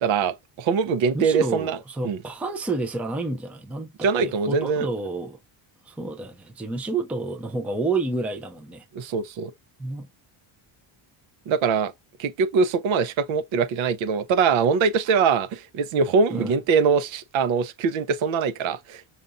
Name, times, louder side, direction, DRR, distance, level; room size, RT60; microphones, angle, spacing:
voice 1, 0.0-1.8 2.0-2.2 4.0-4.9 8.9-9.5 11.5-11.9 12.2-19.0, right 5 dB, 75° right, 0.8 m, -23 dB
voice 2, 1.1-5.4 5.9-8.8 9.8-10.1 16.3-16.5, right 3 dB, 5° right, 0.4 m, -29 dB
5.6 x 2.4 x 2.5 m
cardioid pair, 155°, 48 cm